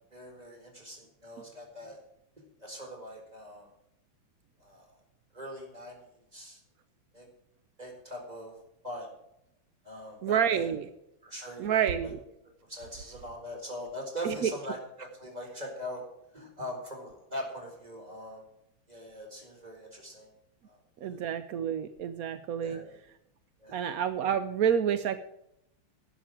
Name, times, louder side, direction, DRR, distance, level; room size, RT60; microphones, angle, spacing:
voice 1, 0.1-2.0 2.6-3.7 4.6-4.9 5.3-6.0 6.3-6.6 7.1-7.3 7.8-8.5 8.8-9.1 9.8-10.7 11.2-12.1 12.7-16.0 16.3-18.4 18.9-20.3 20.6-21.2 22.6-22.9 23.6-23.8, equal, 15° right, 1 dB, 4.4 m, -41 dB
voice 2, 10.2-10.9 11.6-12.2 14.2-14.5 21.0-22.8 23.7-25.2, right 8 dB, 70° right, 11 dB, 0.8 m, -28 dB
11.0 x 8.8 x 8.6 m, 0.80 s
omnidirectional pair, 2.4 m